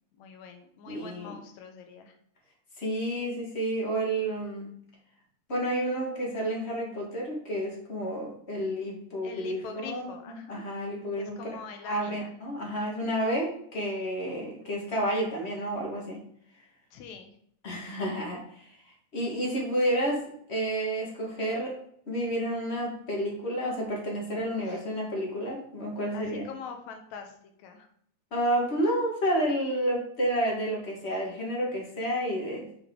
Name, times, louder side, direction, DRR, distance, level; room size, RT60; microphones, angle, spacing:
voice 1, 0.2-2.2 9.2-10.6 11.2-12.4 16.9-17.3 24.7-24.8 26.1-27.3 27.6-27.9, left 6 dB, 75° left, 5 dB, 2.1 m, -44 dB
voice 2, 0.9-1.4 2.8-4.7 5.5-11.6 11.8-16.2 17.6-18.7 19.1-20.2 20.5-21.7 22.1-26.5 28.3-32.7, right 1 dB, 30° left, -2 dB, 1.4 m, -30 dB
6.7 x 5.1 x 3.7 m, 0.66 s
omnidirectional pair, 3.4 m